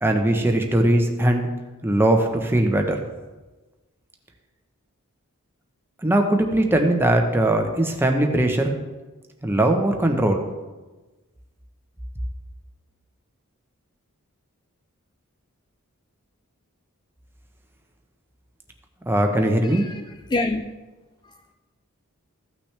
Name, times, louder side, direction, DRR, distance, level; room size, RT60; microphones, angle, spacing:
voice 1, 0.0-1.5 1.8-3.0 6.0-8.7 9.4-10.4 19.1-19.9, right 1 dB, 10° right, 0.9 m, -20 dB
voice 2, 19.6-20.7 21.2-21.5, left 2 dB, 20° left, 0.3 m, -28 dB
15.0 x 6.0 x 3.4 m
head